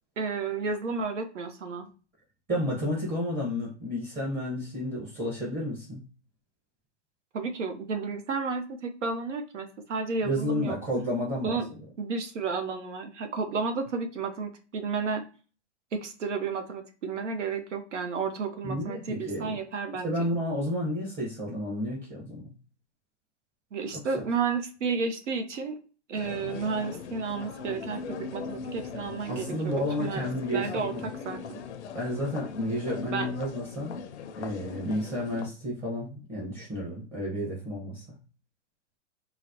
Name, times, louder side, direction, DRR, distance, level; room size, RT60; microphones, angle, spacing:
voice 1, 0.2-1.9 7.3-10.8 11.4-11.7 12.0-15.2 15.9-20.3 23.7-25.8 26.1-30.9 31.2-31.6 33.1-33.3, right 4 dB, 80° right, 6 dB, 0.9 m, -32 dB
voice 2, 2.5-6.0 10.2-11.6 18.6-19.6 20.0-22.5 29.3-31.0 31.9-34.0 34.4-38.0, equal, 20° right, -5 dB, 1.0 m, -31 dB
sound 1, 26.1-35.5, left 6 dB, 70° left, 0.6 m, -40 dB
4.0 x 2.1 x 2.8 m, 0.36 s
hypercardioid pair, 135°, 36 cm